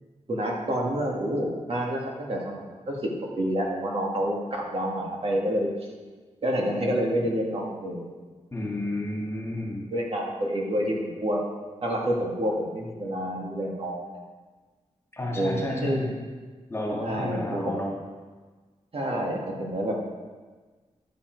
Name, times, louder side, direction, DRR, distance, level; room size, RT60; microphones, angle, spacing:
voice 1, 0.3-5.7 6.4-8.1 9.9-11.4 11.8-14.0 15.2-16.1 17.0-17.7 18.9-19.9, equal, 50° right, -2 dB, 1.9 m, -28 dB
voice 2, 8.5-9.8 15.1-16.1 16.7-17.9, left 1 dB, 20° left, -2 dB, 2.2 m, -31 dB
11.5 x 7.2 x 4.7 m, 1.4 s
wide cardioid pair, 105°, 12 cm